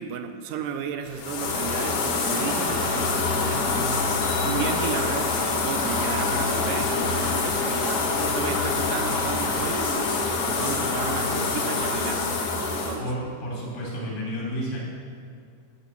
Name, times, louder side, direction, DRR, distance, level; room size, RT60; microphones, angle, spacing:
voice 1, 0.0-13.1, right 8 dB, 80° right, 7 dB, 2.2 m, -34 dB
sound 1, 1.0-9.9, equal, 30° left, 3.5 m, -45 dB
sound 2, 1.2-13.0, left 4 dB, 70° left, 2.9 m, -25 dB
sound 3, 4.2-6.5, left 3 dB, 50° left, 3.8 m, -46 dB
voice 2, 13.0-14.8, equal, 90° left, -5 dB, 5.4 m, -31 dB
12.5 x 7.8 x 7.0 m, 2.3 s
omnidirectional pair, 4.0 m